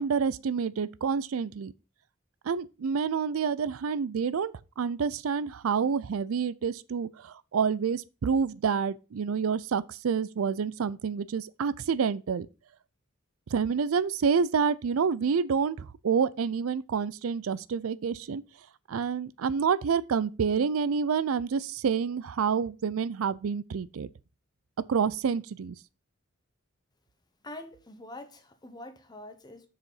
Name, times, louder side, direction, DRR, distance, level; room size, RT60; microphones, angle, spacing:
voice 1, 0.0-1.7 2.5-12.5 13.5-18.4 18.9-24.1 24.9-25.8, right 6 dB, 90° right, 0.4 m, -28 dB
voice 2, 27.4-29.7, left 1 dB, 20° left, 1.0 m, -45 dB
6.6 x 4.9 x 5.5 m
head